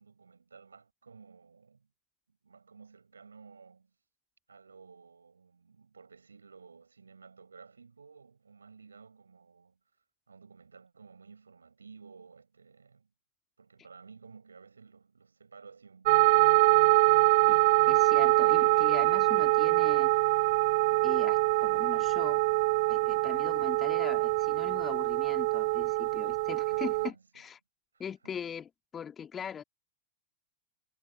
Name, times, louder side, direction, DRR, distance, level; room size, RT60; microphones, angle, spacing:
voice 1, 0.0-1.9 2.3-3.9 4.5-9.8 10.3-13.1 13.6-16.6 26.7-27.5 27.9-28.4, right 5 dB, 75° right, 6.4 m, -54 dB
sound 1, 16.1-27.1, right 24 dB, 50° right, 0.6 m, -24 dB
voice 2, 17.9-20.1 21.0-22.4 22.9-27.6 28.0-29.6, left 8 dB, 20° left, 2.9 m, -41 dB
figure-of-eight pair, 90°, 0 cm